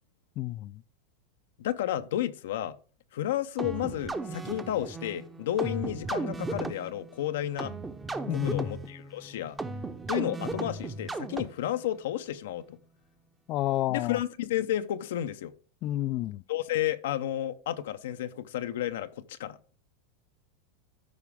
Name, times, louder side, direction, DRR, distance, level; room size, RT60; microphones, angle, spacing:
voice 1, 0.4-0.8 8.3-8.7 13.5-14.2 15.8-16.4, left 14 dB, 45° left, 0.3 m, -30 dB
voice 2, 1.6-2.8 3.1-7.7 8.3-9.6 10.1-12.8 13.9-15.5 16.5-19.6, left 12 dB, 80° left, 0.6 m, -32 dB
sound 1, 3.6-11.8, right 3 dB, 15° right, 0.7 m, -36 dB
13.0 x 5.0 x 3.5 m
supercardioid pair, 130°, 0 cm